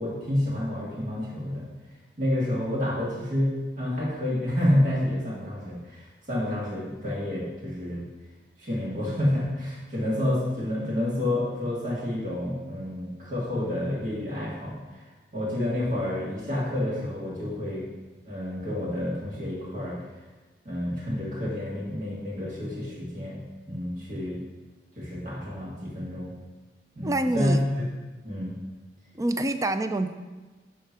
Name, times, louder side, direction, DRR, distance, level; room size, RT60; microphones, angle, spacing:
voice 1, 0.0-1.6 2.2-8.0 8.6-15.1 15.3-17.9 18.2-20.0 20.6-23.4 23.7-24.4 25.0-26.3 26.9-27.9 28.2-28.5, left 1 dB, 45° right, -5 dB, 2.4 m, -29 dB
voice 2, 27.0-27.6 29.1-30.1, right 1 dB, 20° right, 9 dB, 0.4 m, -26 dB
8.9 x 3.7 x 6.0 m, 1.3 s
head